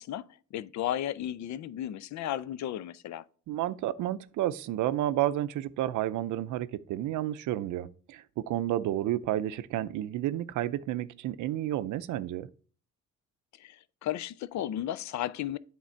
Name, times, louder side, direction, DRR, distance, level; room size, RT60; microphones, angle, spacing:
voice 1, 0.0-3.2 13.6-15.6, left 11 dB, 70° left, 0.5 m, -34 dB
voice 2, 3.5-12.5, right 13 dB, 80° right, 0.5 m, -31 dB
8.4 x 3.8 x 4.4 m
cardioid pair, 90°, 30 cm